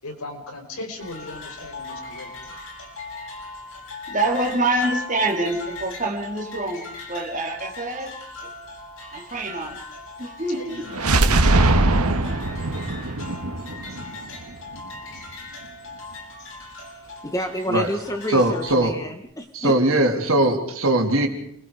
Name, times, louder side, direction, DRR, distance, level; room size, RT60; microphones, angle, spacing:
voice 1, 0.0-2.3 10.6-11.7, left 2 dB, 80° left, 4 dB, 5.1 m, -38 dB
sound 1, 1.0-18.9, left 3 dB, 60° left, 5.3 m, -39 dB
voice 2, 4.1-8.1 9.1-9.8 10.2-10.8, right 2 dB, 35° right, 2 dB, 3.6 m, -26 dB
sound 2, 10.9-14.8, right 2 dB, 85° right, 1.8 m, -21 dB
voice 3, 17.2-19.8, equal, 15° left, 6 dB, 1.4 m, -29 dB
voice 4, 18.3-18.9 19.5-21.3, right 1 dB, 70° right, 3 dB, 3.4 m, -20 dB
29.0 x 22.5 x 5.0 m, 0.70 s
head